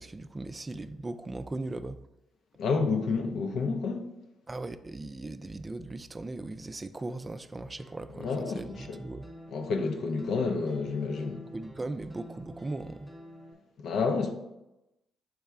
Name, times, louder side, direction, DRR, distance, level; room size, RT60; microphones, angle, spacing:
voice 1, 0.0-2.0 4.5-9.3 11.5-13.1, right 2 dB, 30° right, 0.3 m, -38 dB
voice 2, 2.6-4.1 8.2-9.0 9.5-11.4 13.8-14.3, left 4 dB, 70° left, 0.6 m, -29 dB
sound 1, 7.8-13.5, equal, 5° left, 1.0 m, -50 dB
4.7 x 3.1 x 3.4 m
hypercardioid pair, 45°, 0 cm